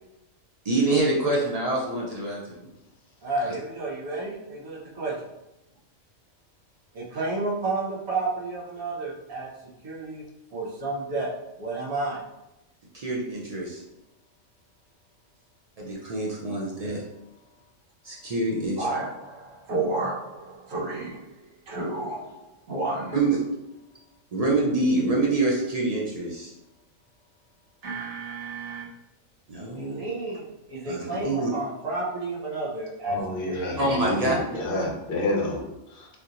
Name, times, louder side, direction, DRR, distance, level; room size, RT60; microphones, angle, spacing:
voice 1, 0.6-2.7 3.4-3.5 12.9-13.8 15.8-17.0 18.0-18.9 23.1-23.4 24.3-26.5 29.5-30.0 30.9-31.5 33.8-34.4, right 2 dB, 65° right, -3 dB, 0.3 m, -26 dB
voice 2, 3.2-5.1 6.9-9.5 9.8-10.2 10.5-11.3 11.6-12.2 18.8-21.2 21.7-23.2 27.8-28.9 29.8-33.2 33.5-34.7, right 2 dB, 85° right, -6 dB, 1.4 m, -31 dB
voice 3, 33.1-36.1, left 2 dB, 55° left, 0 dB, 0.7 m, -29 dB
3.5 x 2.8 x 2.4 m, 0.93 s
omnidirectional pair, 1.3 m